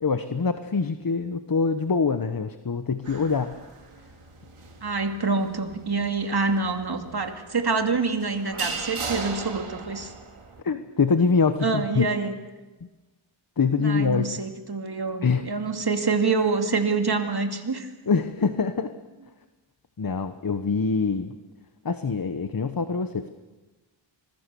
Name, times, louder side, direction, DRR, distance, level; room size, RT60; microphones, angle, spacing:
voice 1, 0.0-3.5 10.6-12.0 13.6-14.3 15.2-15.5 18.1-18.9 20.0-21.3 21.8-23.3, left 5 dB, 45° left, 10 dB, 1.1 m, -24 dB
sound 1, 3.0-10.6, right 4 dB, 85° right, 3.1 m, -38 dB
voice 2, 4.8-10.1 11.6-12.3 13.8-17.9, right 4 dB, 50° right, 5 dB, 2.5 m, -26 dB
25.5 x 21.0 x 6.9 m, 1.2 s
wide cardioid pair, 70°, 49 cm